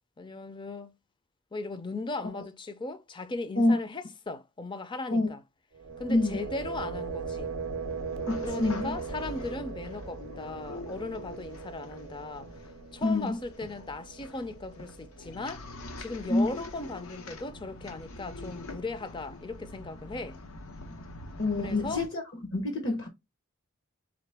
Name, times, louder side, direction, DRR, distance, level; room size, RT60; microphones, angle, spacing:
voice 1, 0.2-0.9 1.5-5.4 6.0-7.5 8.4-12.5 12.9-15.6 16.0-20.4 21.6-22.0, left 3 dB, 25° left, 0.4 m, -37 dB
sound 1, 5.7-15.6, right 5 dB, 65° right, 0.4 m, -39 dB
sound 2, 5.9-22.1, left 2 dB, 85° left, 0.8 m, -45 dB
voice 2, 8.3-9.0 13.0-13.4 16.3-16.5 21.4-22.2 22.5-23.1, left 2 dB, 60° left, 0.9 m, -26 dB
3.9 x 3.2 x 3.3 m
head